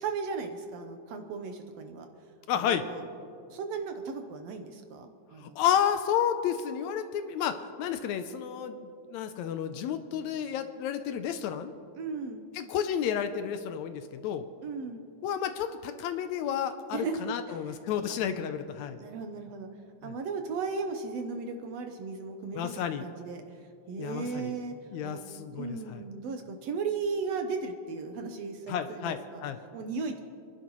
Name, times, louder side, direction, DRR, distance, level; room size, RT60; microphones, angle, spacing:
voice 1, 0.0-2.1 2.5-3.0 3.5-5.6 12.0-12.5 14.6-15.0 16.9-17.8 18.1-18.2 19.0-19.7 20.0-23.6 23.9-24.7 25.0-25.2 25.5-29.4 29.7-30.2, right 4 dB, 70° right, 5 dB, 1.8 m, -36 dB
voice 2, 2.5-2.8 5.4-11.7 12.6-14.5 15.2-19.0 20.0-20.1 22.6-23.1 24.0-24.5 24.9-26.0 28.7-29.6, left 9 dB, 75° left, 9 dB, 1.8 m, -31 dB
29.0 x 11.5 x 3.1 m, 2.5 s
omnidirectional pair, 3.5 m